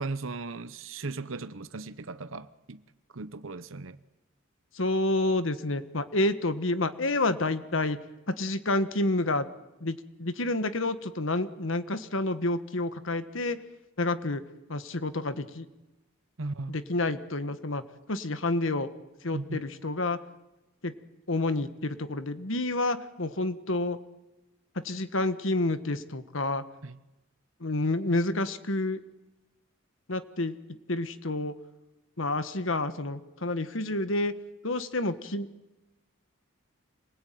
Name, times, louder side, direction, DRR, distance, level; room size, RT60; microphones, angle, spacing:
voice 1, 0.0-2.8 3.1-4.0 16.4-16.8 19.3-19.6 26.8-27.0, right 3 dB, 70° right, 0.9 m, -37 dB
voice 2, 4.7-8.0 8.3-9.5 9.8-13.6 14.0-14.4 14.7-15.6 16.7-17.8 18.1-18.9 19.2-20.2 20.8-20.9 21.3-24.0 24.8-26.6 27.6-29.0 30.1-30.5 30.9-31.5 32.2-34.3 34.6-35.5, left 2 dB, 70° left, 1.5 m, -29 dB
26.5 x 20.5 x 9.3 m
head